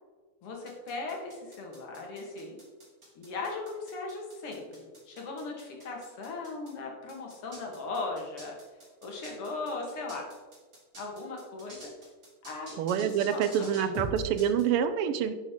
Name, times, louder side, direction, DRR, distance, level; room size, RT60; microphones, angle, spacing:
voice 1, 0.4-2.6 3.2-4.6 5.1-8.6 9.0-10.3 11.0-11.8 12.4-12.7 13.0-13.9, left 3 dB, 85° left, 0 dB, 2.6 m, -38 dB
sound 1, 0.7-6.7 7.1-14.6, right 3 dB, 40° right, 3.2 m, -44 dB
voice 2, 12.8-15.3, right 8 dB, 85° right, 11 dB, 1.6 m, -27 dB
11.0 x 6.5 x 3.7 m, 1.4 s
omnidirectional pair, 2.4 m